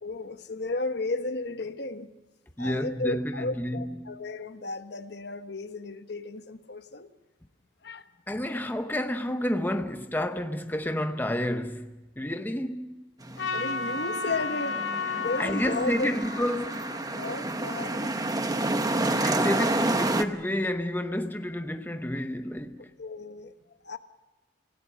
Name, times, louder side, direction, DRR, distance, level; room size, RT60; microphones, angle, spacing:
voice 1, 0.0-2.1 2.6-7.1 7.8-8.1 13.5-16.1 17.1-18.2 23.0-24.0, left 3 dB, 60° left, 1.1 m, -34 dB
voice 2, 2.6-4.2 8.3-13.1 15.1-16.9 19.2-22.9, left 1 dB, 10° left, 0.7 m, -30 dB
sound 1, 13.2-20.2, right 2 dB, 20° right, 0.9 m, -29 dB
Trumpet, 13.4-17.8, left 4 dB, 80° left, 2.6 m, -34 dB
29.5 x 17.0 x 6.3 m
head